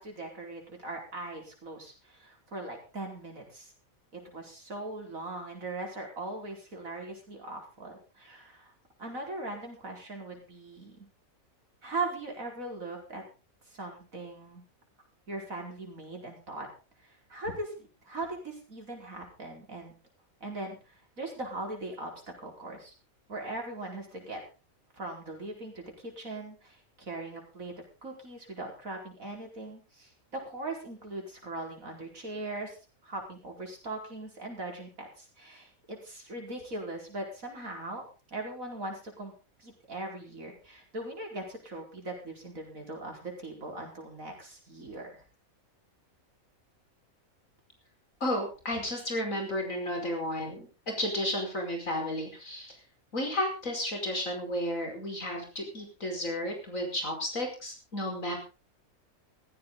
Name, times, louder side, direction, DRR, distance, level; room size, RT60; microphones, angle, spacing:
voice 1, 0.0-3.7 4.1-8.7 9.0-11.1 11.8-13.2 13.7-14.6 15.3-16.7 17.3-19.9 20.4-22.9 23.3-24.4 25.0-27.7 28.0-32.8 33.0-39.3 39.6-45.2, right 2 dB, 70° right, 1 dB, 5.2 m, -40 dB
voice 2, 48.2-52.8 53.1-58.4, left 1 dB, 70° left, 3 dB, 5.6 m, -33 dB
16.5 x 15.0 x 4.0 m, 0.33 s
omnidirectional pair, 1.5 m